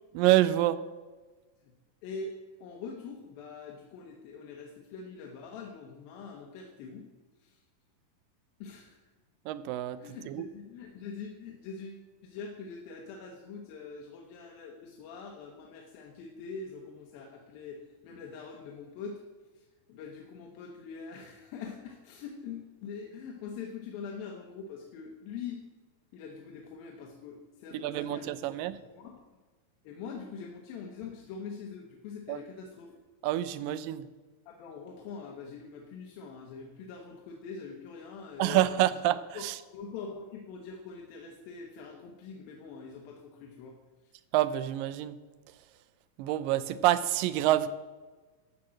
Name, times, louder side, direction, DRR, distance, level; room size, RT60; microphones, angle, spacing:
voice 1, 0.2-0.8 9.5-10.0 10.3-10.5 27.8-28.8 32.3-32.4 33.2-34.0 38.4-39.6 44.3-45.2 46.2-47.7, right 14 dB, 80° right, 14 dB, 2.2 m, -27 dB
voice 2, 2.0-7.1 7.4-7.6 8.6-9.0 10.0-19.2 19.6-25.6 26.1-29.2 29.8-33.0 34.5-38.6 39.3-39.5 39.7-43.8 44.0-44.2, left 5 dB, 85° left, 1 dB, 2.8 m, -44 dB
13.0 x 4.9 x 7.4 m, 1.3 s
omnidirectional pair, 4.1 m